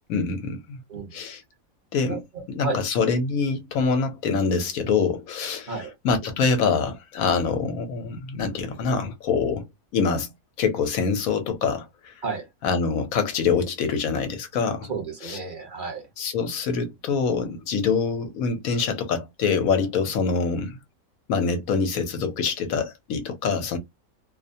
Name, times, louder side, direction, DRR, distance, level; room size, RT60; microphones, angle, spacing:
voice 1, 0.1-0.8 1.1-1.4 1.9-2.2 2.5-5.7 6.0-9.6 9.9-10.3 10.6-11.9 12.6-14.9 15.2-15.4 16.2-20.8 21.3-23.8, left 5 dB, 80° left, 1.2 m, -25 dB
voice 2, 2.1-2.8 5.7-5.9 12.2-12.4 14.9-16.0, right 4 dB, 40° right, 1.1 m, -32 dB
2.6 x 2.1 x 2.6 m
omnidirectional pair, 1.4 m